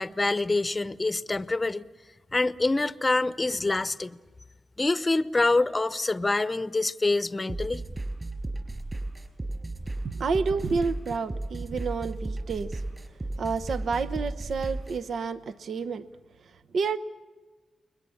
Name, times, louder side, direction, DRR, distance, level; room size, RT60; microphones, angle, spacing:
voice 1, 0.0-1.8 2.3-4.2 4.8-7.8, left 2 dB, 20° left, 0.8 m, -26 dB
sound 1, 7.5-15.0, right 2 dB, 25° right, 4.6 m, -34 dB
voice 2, 10.2-12.8 13.4-16.0 16.7-17.0, right 4 dB, 65° right, 0.9 m, -29 dB
29.5 x 22.0 x 7.2 m
wide cardioid pair, 110°, 0 cm